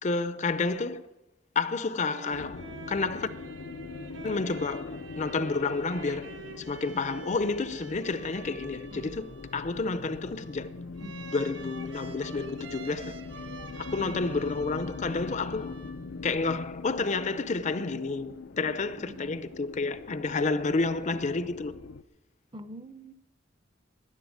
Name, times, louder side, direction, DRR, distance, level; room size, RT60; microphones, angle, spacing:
voice 1, 0.0-1.0 1.6-2.6 2.9-3.3 4.2-10.7 11.3-13.1 13.8-15.7 16.2-21.7, left 3 dB, 40° left, 0.6 m, -30 dB
sound 1, 1.8-16.4, right 3 dB, 75° right, 1.4 m, -47 dB
sound 2, 2.3-22.0, left 4 dB, 85° left, 0.6 m, -42 dB
voice 2, 14.0-14.3 19.0-19.4 22.5-23.1, right 1 dB, 25° right, 0.7 m, -44 dB
11.5 x 11.0 x 9.4 m
head